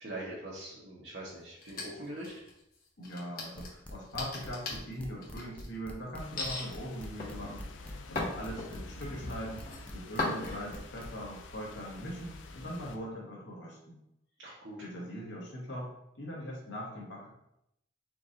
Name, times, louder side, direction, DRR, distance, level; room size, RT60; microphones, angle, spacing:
voice 1, 0.0-2.3 14.4-15.1, right 1 dB, 70° right, -7 dB, 1.1 m, -43 dB
sound 1, 1.6-2.6 3.0-5.7 6.4-6.7 7.2-9.0 9.4-9.8 10.2-10.8, left 2 dB, 50° left, 1.2 m, -37 dB
voice 2, 3.0-9.7 9.9-14.0 14.8-17.3, equal, 70° left, -3 dB, 1.5 m, -41 dB
sound 2, 3.6-11.1, left 1 dB, 5° left, 0.5 m, -47 dB
sound 3, 6.2-13.0, left 2 dB, 90° left, 0.5 m, -48 dB
4.6 x 2.6 x 3.8 m, 0.79 s
head